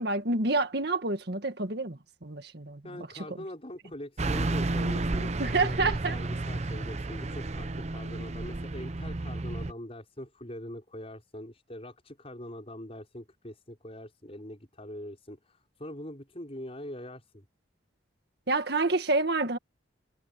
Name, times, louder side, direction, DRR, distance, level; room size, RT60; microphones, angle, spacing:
voice 1, 0.0-3.1 5.4-6.2 18.5-19.6, right 3 dB, 60° right, 1.9 m, -28 dB
voice 2, 2.8-17.4, left 1 dB, 30° left, 5.9 m, -43 dB
Car passing by / Truck, 4.2-9.7, right 2 dB, 35° right, 0.7 m, -32 dB
head